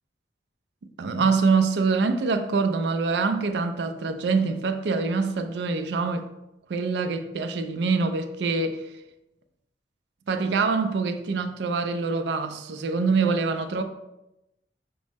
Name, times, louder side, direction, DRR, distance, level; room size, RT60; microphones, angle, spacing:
voice 1, 1.0-6.3 6.7-8.8 10.3-13.8, right 4 dB, 80° right, 0.4 m, -25 dB
6.0 x 2.1 x 3.3 m
head